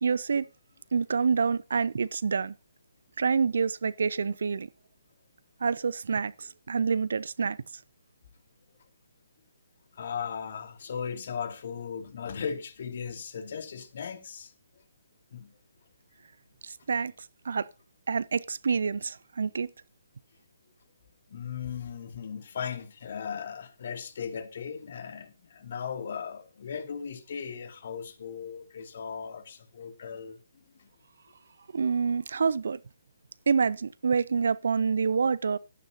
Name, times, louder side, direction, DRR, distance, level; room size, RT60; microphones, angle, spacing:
voice 1, 0.0-0.4 0.9-2.5 3.2-4.7 5.6-7.6 16.6-17.1 17.4-17.7 18.1-19.7 31.7-32.8 33.5-35.6, right 5 dB, 55° right, 0.6 m, -27 dB
voice 2, 9.9-14.8 15.3-15.6 21.3-30.9, left 7 dB, 45° left, 2.5 m, -37 dB
16.5 x 13.5 x 2.8 m
figure-of-eight pair, 135°, 0 cm